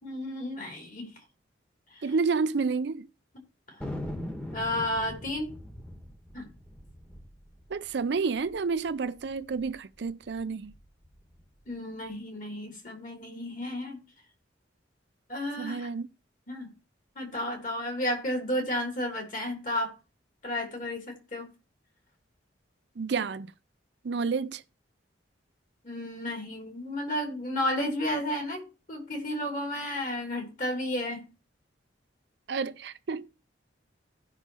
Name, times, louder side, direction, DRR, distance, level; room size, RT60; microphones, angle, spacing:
voice 1, 0.0-1.1 1.9-2.0 3.7-3.8 4.5-5.5 6.3-6.5 11.7-14.0 15.3-15.9 16.5-16.7 17.1-19.9 20.4-21.5 25.8-28.6 28.9-31.3, left 1 dB, 45° left, 2.9 m, -32 dB
voice 2, 2.0-3.1 7.7-10.7 15.6-16.1 23.0-23.5 24.0-24.6 32.5-33.3, right 4 dB, 60° right, 0.5 m, -30 dB
Thunder, 3.8-8.6 8.9-9.0 9.2-9.7 10.2-11.4, left 1 dB, 5° left, 1.2 m, -41 dB
16.0 x 5.6 x 2.9 m
head